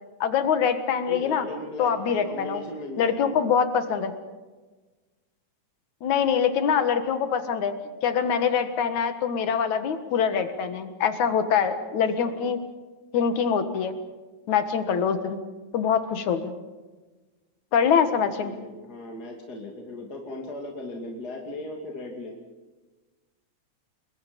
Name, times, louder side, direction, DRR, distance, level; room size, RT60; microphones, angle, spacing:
voice 1, 0.2-1.5 1.8-2.6 3.0-4.1 6.0-7.7 8.0-12.6 13.1-13.9 14.5-15.4 15.7-16.5 17.7-18.5, left 7 dB, 75° left, 9 dB, 2.9 m, -24 dB
voice 2, 1.1-3.4 12.2-12.5 17.9-22.4, left 2 dB, 35° left, 0 dB, 2.8 m, -38 dB
29.5 x 22.5 x 5.3 m, 1.3 s
omnidirectional pair, 3.4 m